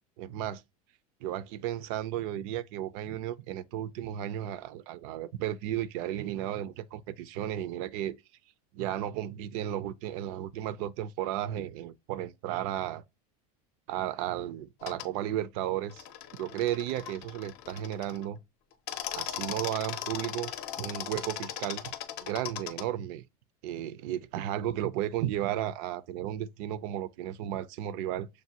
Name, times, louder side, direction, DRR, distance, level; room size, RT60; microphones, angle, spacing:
voice 1, 0.2-0.6 1.2-8.2 8.7-13.0 13.9-16.0 16.3-18.4 19.1-20.5 20.8-21.9 22.2-23.2 23.6-28.3, right 12 dB, 65° right, 0.4 m, -34 dB
sound 1, 14.8-15.1 15.9-18.3 18.7-22.8, left 11 dB, 55° left, 0.6 m, -38 dB
6.3 x 2.2 x 2.8 m
supercardioid pair, 125°, 19 cm